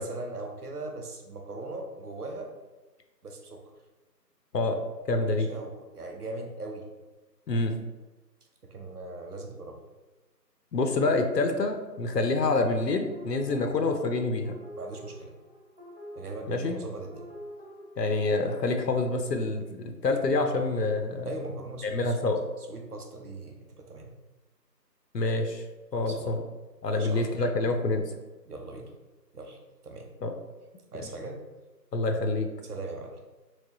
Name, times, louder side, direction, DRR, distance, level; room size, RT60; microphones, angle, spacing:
voice 1, 0.0-2.5 3.2-3.6 5.1-6.9 8.6-9.8 14.8-15.3 16.2-17.3 21.3-22.1 22.7-24.1 26.0-26.3 26.9-27.3 28.5-28.9 29.3-30.1 30.9-31.4 32.7-33.2, right 2 dB, 65° right, 3 dB, 0.7 m, -39 dB
voice 2, 5.1-5.5 7.5-7.7 10.7-14.5 16.5-16.8 18.0-21.3 21.8-22.4 25.1-25.6 25.9-26.4 26.8-28.1 30.2-30.3 31.9-32.5, left 2 dB, 75° left, 5 dB, 0.6 m, -27 dB
sound 1, 13.1-17.9, equal, 35° right, 1.1 m, -46 dB
3.3 x 3.0 x 2.7 m, 1.1 s
figure-of-eight pair, 170°, 50 cm